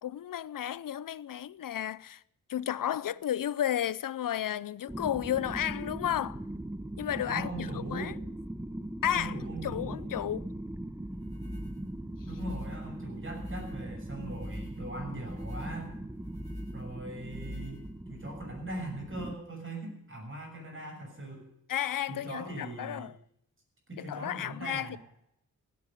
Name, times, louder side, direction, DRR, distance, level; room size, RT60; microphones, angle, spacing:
voice 1, 0.0-2.2 2.5-6.4 7.0-8.1 9.0-9.4 9.6-10.5 21.7-23.2 24.0-25.0, left 11 dB, 70° left, 0.6 m, -33 dB
sound 1, 4.9-19.3, right 1 dB, 10° right, 0.9 m, -40 dB
voice 2, 7.3-8.1 9.1-10.1 12.2-15.9 16.7-21.5 22.1-23.1 23.9-25.0, right 1 dB, 35° right, 6.5 m, -40 dB
sound 2, 11.1-18.3, left 1 dB, 20° left, 6.9 m, -44 dB
16.5 x 8.7 x 9.9 m
cardioid pair, 70°, 34 cm